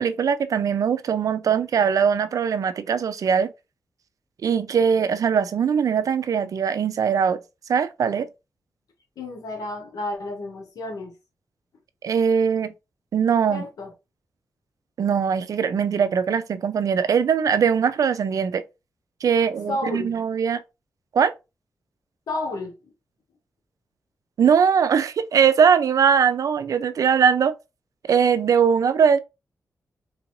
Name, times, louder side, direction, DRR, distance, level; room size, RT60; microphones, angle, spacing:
voice 1, 0.0-3.5 4.4-7.4 7.7-8.3 12.0-12.7 13.1-13.6 15.0-18.6 19.2-20.6 21.1-21.3 24.4-27.5 28.1-29.2, right 7 dB, 70° right, 0.4 m, -21 dB
voice 2, 9.2-11.1 13.5-13.9 19.3-20.1 22.3-22.9, left 2 dB, 90° left, 1.0 m, -31 dB
3.8 x 2.5 x 2.9 m
cardioid pair, 80°, 6 cm